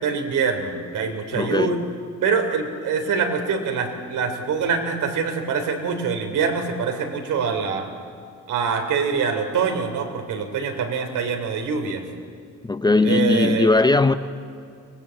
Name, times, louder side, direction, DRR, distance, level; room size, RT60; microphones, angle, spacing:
voice 1, 0.0-1.8 2.2-7.9 8.5-12.0 13.0-13.7, right 5 dB, 70° right, 3.5 m, -24 dB
voice 2, 1.3-1.8 12.6-14.1, left 3 dB, 15° left, 0.6 m, -19 dB
24.0 x 19.5 x 8.3 m
cardioid pair, 125°, 31 cm